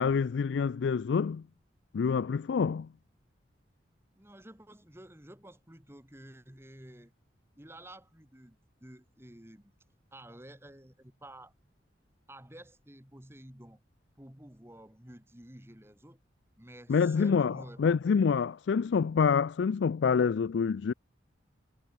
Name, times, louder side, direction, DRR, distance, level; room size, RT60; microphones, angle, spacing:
voice 1, 0.0-1.4 1.9-2.9 16.9-20.9, left 6 dB, 75° left, 0.4 m, -27 dB
voice 2, 4.1-7.1 7.6-9.7 10.1-11.5 12.3-13.8 14.2-16.2 16.6-18.0, right 1 dB, 15° right, 2.4 m, -51 dB
head